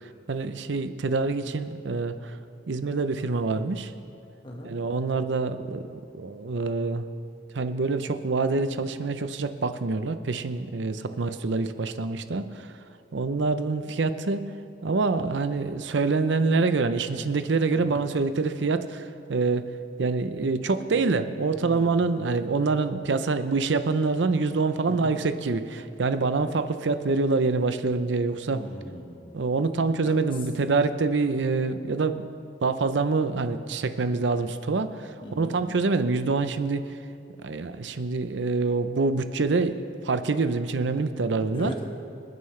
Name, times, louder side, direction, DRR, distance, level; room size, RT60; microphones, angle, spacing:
voice 1, 0.3-2.4 2.7-3.9 4.6-5.9 6.1-7.1 7.5-12.7 13.1-14.4 14.8-19.7 20.0-28.6 29.3-32.3 32.6-36.9 37.4-41.7, right 3 dB, 75° right, 10 dB, 0.6 m, -26 dB
voice 2, 21.6-22.0 24.9-25.1 28.5-29.4 30.0-30.1 35.2-35.5 41.5-41.9, equal, 30° left, 0 dB, 1.6 m, -39 dB
26.5 x 9.3 x 3.3 m, 2.5 s
head